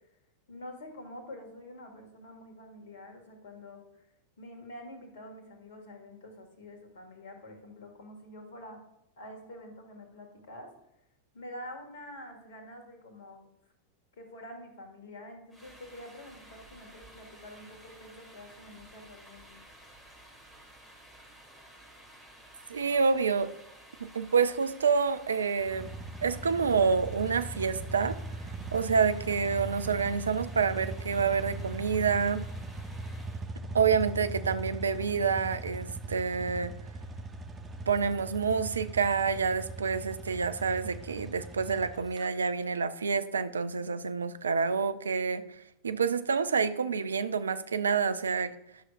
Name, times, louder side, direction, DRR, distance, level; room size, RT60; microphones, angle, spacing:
voice 1, 0.5-4.1 4.4-8.8 9.2-10.7 11.3-13.5 14.2-19.6, left 1 dB, 55° left, 4 dB, 1.7 m, -47 dB
sound 1, 15.5-33.5, right 1 dB, ahead, 2.4 m, -53 dB
voice 2, 22.7-23.5 24.0-25.9 26.2-28.2 28.7-32.4 33.7-36.7 37.9-45.6 45.8-48.5, right 5 dB, 70° right, 12 dB, 0.4 m, -28 dB
sound 2, 25.6-42.3, right 2 dB, 15° right, 0.9 m, -40 dB
11.0 x 6.3 x 2.4 m, 0.86 s
figure-of-eight pair, 90°, 0 cm